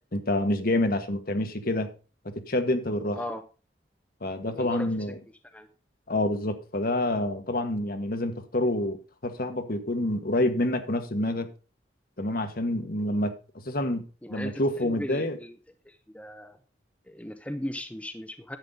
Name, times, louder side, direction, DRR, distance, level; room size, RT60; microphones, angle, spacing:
voice 1, 0.1-1.9 2.3-3.2 4.2-5.1 6.1-11.5 12.2-13.3 13.6-14.0 14.3-15.4, left 1 dB, 50° left, 1.4 m, -27 dB
voice 2, 4.5-5.1 5.5-5.7 14.2-15.5 15.8-16.6 17.1-18.6, left 1 dB, 5° left, 0.7 m, -37 dB
10.5 x 8.5 x 3.8 m
head